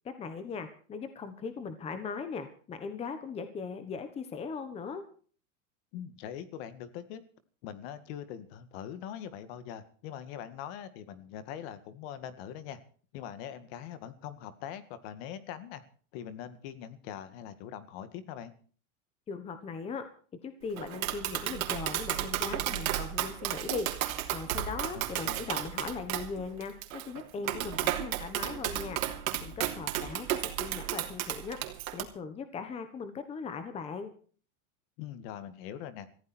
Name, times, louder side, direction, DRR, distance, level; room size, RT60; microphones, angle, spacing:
voice 1, 0.0-5.0 19.3-20.1 20.4-23.9 24.3-29.0 29.4-31.6 31.9-34.1, left 5 dB, 15° left, 10 dB, 1.3 m, -39 dB
voice 2, 5.9-7.2 7.6-12.8 13.1-15.8 16.1-18.5 24.9-25.5 35.0-36.1, left 9 dB, 45° left, 13 dB, 2.0 m, -42 dB
Tap, 20.8-32.0, right 13 dB, 80° right, 3.1 m, -33 dB
18.5 x 15.0 x 4.4 m, 0.43 s
supercardioid pair, 170°, 41 cm